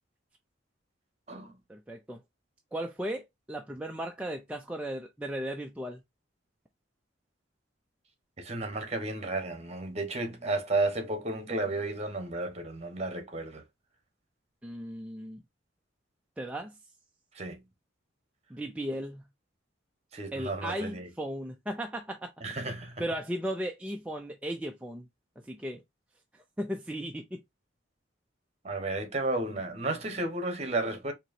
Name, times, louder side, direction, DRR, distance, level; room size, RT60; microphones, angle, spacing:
voice 1, 1.7-2.2 2.7-6.0 14.6-15.4 16.4-16.7 18.5-19.2 20.3-22.3 23.0-25.1 25.5-25.8 26.6-27.4, equal, 5° right, 0.4 m, -36 dB
voice 2, 8.4-13.6 17.3-17.6 20.1-21.1 22.4-23.0 28.6-31.1, right 2 dB, 35° right, 1.2 m, -33 dB
4.6 x 2.9 x 2.6 m
head